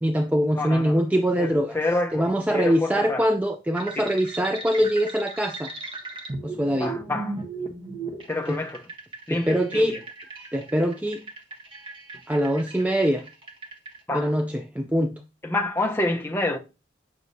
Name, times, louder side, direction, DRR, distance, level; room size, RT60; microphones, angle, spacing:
voice 1, 0.0-1.8 2.1-5.7 6.4-7.0 8.5-8.6 9.3-10.0 10.5-11.2 12.3-13.2 14.1-15.1, equal, 10° right, 0.4 m, -23 dB
voice 2, 0.5-0.9 1.4-1.5 1.7-3.2 4.0-4.1 6.8-7.3 8.3-8.8 9.3-10.0 14.1-14.3 15.4-16.6, left 2 dB, 10° left, 0.8 m, -27 dB
sound 1, 3.8-14.0, right 3 dB, 25° right, 1.3 m, -37 dB
9.1 x 6.1 x 2.7 m
head